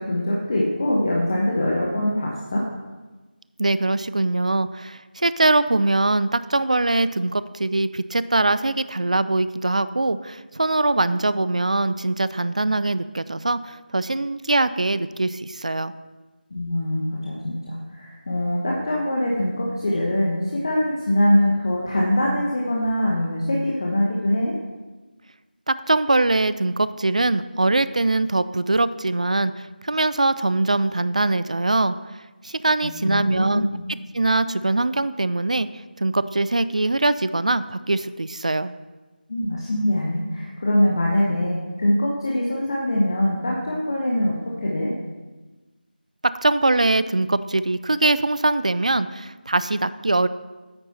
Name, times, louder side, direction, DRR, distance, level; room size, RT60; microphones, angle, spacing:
voice 1, 0.0-2.6 16.5-24.5 32.8-33.8 39.3-44.9, left 1 dB, 30° left, -4 dB, 1.1 m, -23 dB
voice 2, 3.6-15.9 25.7-31.9 32.4-33.7 34.1-35.7 36.0-38.7 46.4-50.3, right 2 dB, 45° right, 15 dB, 0.4 m, -22 dB
9.2 x 8.9 x 4.2 m, 1.2 s
figure-of-eight pair, 165°, 5 cm